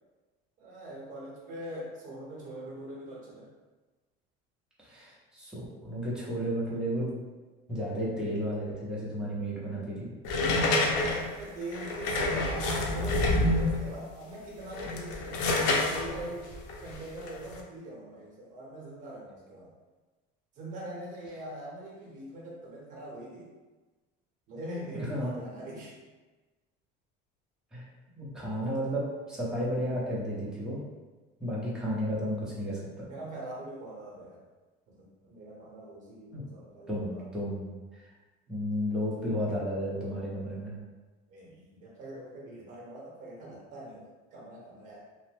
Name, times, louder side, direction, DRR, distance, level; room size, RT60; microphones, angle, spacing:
voice 1, 0.6-3.5 11.4-16.5 16.8-19.7 20.6-23.5 24.5-26.0 33.1-34.4 34.9-37.2 41.3-45.0, right 1 dB, 40° right, -4 dB, 0.9 m, -42 dB
voice 2, 4.8-7.1 7.7-10.1 24.9-25.3 27.7-27.8 28.2-30.8 31.4-33.1 36.3-36.4 36.9-38.0 38.5-40.8, equal, 5° right, -8 dB, 0.7 m, -33 dB
sound 1, 10.2-13.9 14.6-17.6, left 2 dB, 80° left, 0.5 m, -28 dB
3.0 x 2.1 x 3.3 m, 1.2 s
cardioid pair, 165°, 20 cm